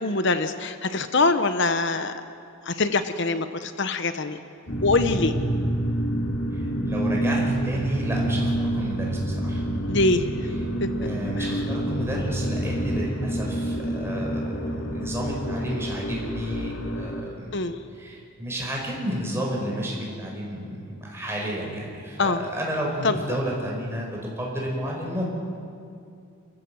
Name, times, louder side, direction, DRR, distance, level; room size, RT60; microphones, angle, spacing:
voice 1, 0.0-2.1 2.7-4.4 4.8-5.4 9.9-10.2 10.8-10.9 17.5-17.8 22.2-22.4 23.0-23.2, left 3 dB, 55° left, 10 dB, 0.9 m, -23 dB
sound 1, 4.7-17.2, right 1 dB, 70° left, 2.4 m, -27 dB
voice 2, 6.5-9.6 11.0-17.5 17.9-25.3, equal, 10° right, -2 dB, 4.9 m, -31 dB
28.0 x 15.0 x 7.8 m, 2.4 s
head